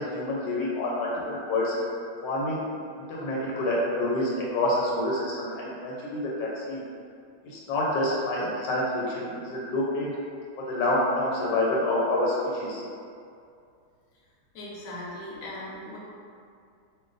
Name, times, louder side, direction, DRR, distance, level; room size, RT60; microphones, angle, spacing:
voice 1, 0.0-1.7 2.2-2.6 3.0-6.8 7.4-10.1 10.7-12.8, left 1 dB, 80° left, -5 dB, 1.3 m, -27 dB
voice 2, 14.5-16.0, left 1 dB, 65° left, -6 dB, 1.0 m, -38 dB
2.5 x 2.5 x 3.8 m, 2.4 s
omnidirectional pair, 1.9 m